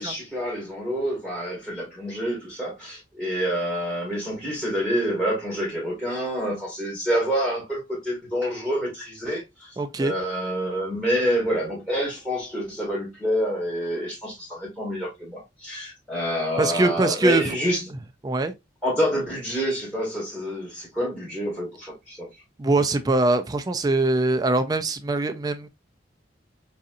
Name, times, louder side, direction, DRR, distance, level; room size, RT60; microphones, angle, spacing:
voice 1, 0.0-9.7 10.0-17.8 18.8-22.3, equal, 5° right, 1.6 m, -27 dB
voice 2, 9.8-10.1 16.6-17.6 18.2-18.5 22.6-25.7, right 2 dB, 20° right, 0.3 m, -22 dB
4.0 x 2.6 x 2.4 m
head